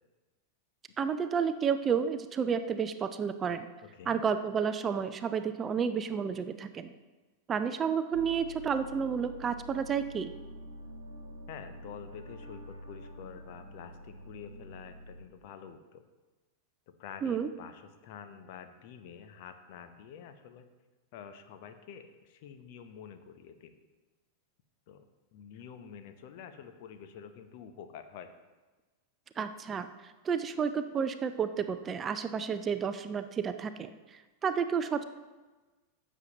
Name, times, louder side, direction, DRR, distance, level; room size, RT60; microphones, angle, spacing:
voice 1, 1.0-3.7 4.1-6.9 7.5-10.3 17.2-17.5 29.4-35.0, right 6 dB, 25° right, 10 dB, 0.5 m, -31 dB
voice 2, 3.8-4.2 11.5-16.0 17.0-20.6 21.1-23.8 24.9-28.3, left 7 dB, 50° left, 8 dB, 0.8 m, -48 dB
sound 1, 8.1-15.3, equal, 85° right, 1.2 m, -47 dB
15.5 x 7.2 x 3.0 m, 1.2 s
figure-of-eight pair, 90°, 0 cm